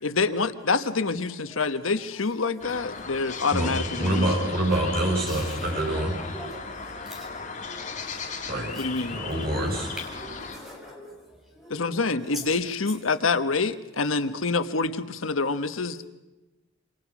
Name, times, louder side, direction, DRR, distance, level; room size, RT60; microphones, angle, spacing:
voice 1, 0.0-4.5 8.7-9.2 11.7-16.0, left 4 dB, 90° left, 11 dB, 1.3 m, -27 dB
sound 1, 2.6-10.5, left 4 dB, 40° left, 3.2 m, -36 dB
voice 2, 3.5-6.2 8.5-8.7 9.0-9.9, right 1 dB, 50° right, 0 dB, 7.6 m, -26 dB
voice 3, 5.7-6.6 7.1-7.3 7.6-7.8 10.2-11.1 11.6-11.8, right 2 dB, ahead, -1 dB, 6.9 m, -38 dB
28.5 x 26.0 x 6.2 m, 1.0 s
head